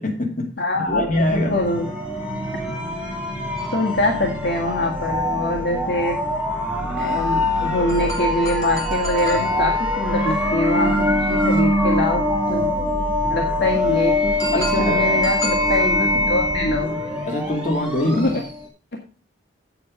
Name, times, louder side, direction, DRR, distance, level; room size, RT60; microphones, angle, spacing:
voice 1, 0.0-1.6 14.5-15.1 17.3-18.4, left 1 dB, 40° left, 0 dB, 2.7 m, -24 dB
voice 2, 0.6-1.9 3.7-6.2 7.0-12.7 13.2-17.0 18.2-18.3, left 2 dB, 60° left, 0 dB, 2.0 m, -24 dB
sound 1, 0.9-16.8, equal, 80° left, 2.8 m, -34 dB
sound 2, 1.1-18.6, left 1 dB, 5° right, 2.9 m, -23 dB
sound 3, 3.6-5.3 7.9-11.8 14.4-17.9, right 2 dB, 20° left, 3.1 m, -33 dB
8.5 x 8.3 x 5.2 m, 0.36 s
head